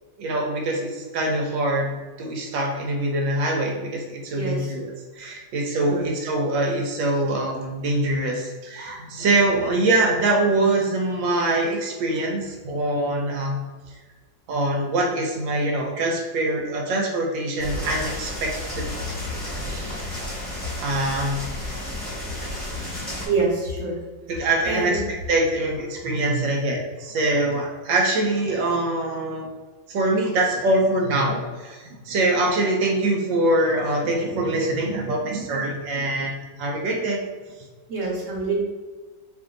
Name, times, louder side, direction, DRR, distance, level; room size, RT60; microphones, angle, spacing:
voice 1, 0.2-4.8 5.2-13.6 14.5-18.9 19.4-20.1 20.8-21.4 24.3-29.5 29.9-36.3 36.6-37.2, right 2 dB, 85° right, 0 dB, 1.3 m, -24 dB
voice 2, 4.3-4.8 5.9-6.1 23.2-24.0 24.7-25.1 37.9-38.6, right 3 dB, 50° right, -3 dB, 1.1 m, -26 dB
sound 1, 17.6-23.3, left 1 dB, 5° left, 1.0 m, -32 dB
3.1 x 2.6 x 3.7 m, 1.3 s
omnidirectional pair, 2.0 m